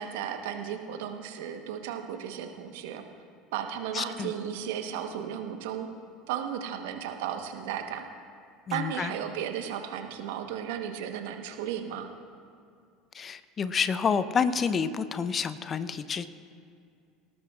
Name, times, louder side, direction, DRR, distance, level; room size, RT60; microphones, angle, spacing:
voice 1, 0.0-3.0 3.5-5.9 6.3-8.1 8.7-12.1, right 9 dB, 65° right, 6 dB, 1.1 m, -34 dB
voice 2, 3.9-4.3 8.7-9.1 13.1-16.3, left 6 dB, 35° left, 13 dB, 0.7 m, -29 dB
18.5 x 18.0 x 2.5 m, 2.4 s
hypercardioid pair, 70°, 0 cm